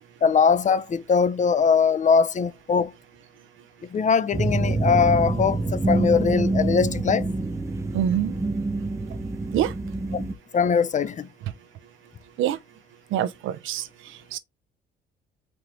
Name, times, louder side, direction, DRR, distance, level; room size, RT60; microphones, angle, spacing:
voice 1, 0.2-2.9 3.9-7.3 10.1-10.3 10.5-11.3, left 6 dB, 40° left, 0.5 m, -21 dB
sound 1, 4.3-10.3, right 2 dB, 15° right, 0.6 m, -26 dB
voice 2, 7.9-8.4 9.5-9.7 12.4-12.6 13.1-13.9 14.3-14.4, right 11 dB, 90° right, 0.7 m, -24 dB
4.6 x 3.8 x 2.9 m
cardioid pair, 90°, 20 cm